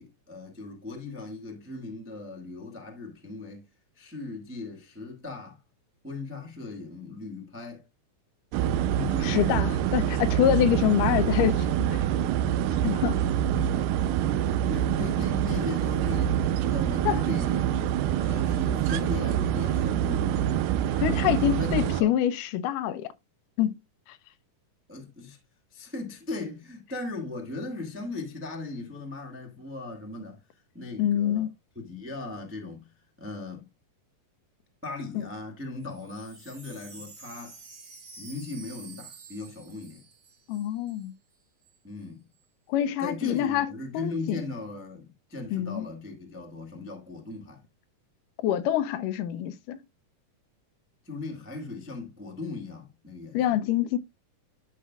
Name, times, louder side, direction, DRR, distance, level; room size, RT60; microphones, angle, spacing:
voice 1, 0.0-3.7 3.9-5.6 6.0-7.8 8.9-9.8 13.5-13.9 14.7-17.7 18.2-20.6 21.4-22.2 24.9-25.4 25.7-30.4 30.7-31.5 31.7-33.7 34.8-37.6 38.2-40.0 41.8-42.3 43.0-47.6 51.0-53.6, left 3 dB, 20° right, 0.3 m, -38 dB
sound 1, 8.5-22.0, right 10 dB, 80° right, 2.2 m, -26 dB
voice 2, 9.2-11.7 12.8-13.2 17.1-17.2 21.0-23.1 23.6-23.8 31.0-31.5 40.5-41.1 42.7-43.7 43.9-44.4 45.5-45.9 48.4-49.8 53.3-54.0, left 11 dB, 80° left, 2.1 m, -25 dB
Wind chime, 35.8-41.1 41.3-41.4 41.6-42.1, right 4 dB, 35° right, 1.5 m, -49 dB
12.0 x 5.6 x 2.3 m
omnidirectional pair, 3.8 m